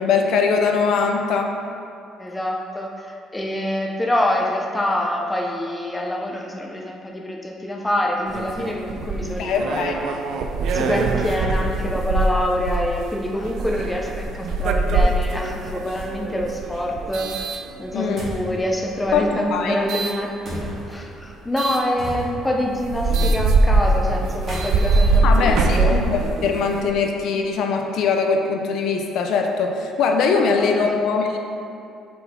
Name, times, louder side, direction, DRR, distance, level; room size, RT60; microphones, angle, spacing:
voice 1, 0.0-1.5 9.4-9.9 17.9-18.2 19.1-19.8 25.2-31.4, left 5 dB, 60° left, 3 dB, 0.5 m, -21 dB
voice 2, 2.2-10.2 10.7-17.3 17.8-26.1 30.5-31.0, left 1 dB, 10° left, -1 dB, 0.4 m, -26 dB
sound 1, 8.3-18.3 18.9-20.2 21.6-21.8 22.4-22.5 22.7-26.9, right 3 dB, 60° right, 0.4 m, -22 dB
sound 2, 18.2-18.5 20.4-21.0 22.0-22.6 24.3-26.2, equal, 30° right, 1.5 m, -34 dB
5.6 x 4.2 x 4.1 m, 2.5 s
cardioid pair, 165°, 0 cm